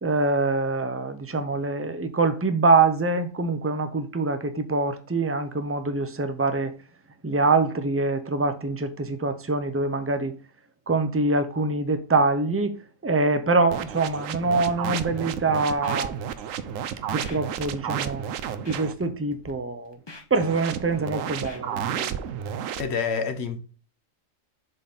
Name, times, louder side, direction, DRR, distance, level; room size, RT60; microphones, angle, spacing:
voice 1, 0.0-6.7 7.2-10.3 10.9-12.8 13.0-16.2 17.1-18.2 18.7-20.0 20.3-22.2, right 3 dB, 15° right, 0.5 m, -24 dB
sound 1, 13.7-19.0 20.3-22.8, right 9 dB, 90° right, 1.0 m, -32 dB
Scratching (performance technique), 15.1-15.3 15.7-16.2 16.5-16.7 17.1-17.4 17.9-18.1 18.5-19.1 19.3-19.5 19.9-20.9 21.3-21.9 22.1-22.3, left 2 dB, 20° left, 1.0 m, -45 dB
voice 2, 22.8-23.6, left 5 dB, 60° left, 1.0 m, -27 dB
7.3 x 3.9 x 4.0 m
omnidirectional pair, 1.3 m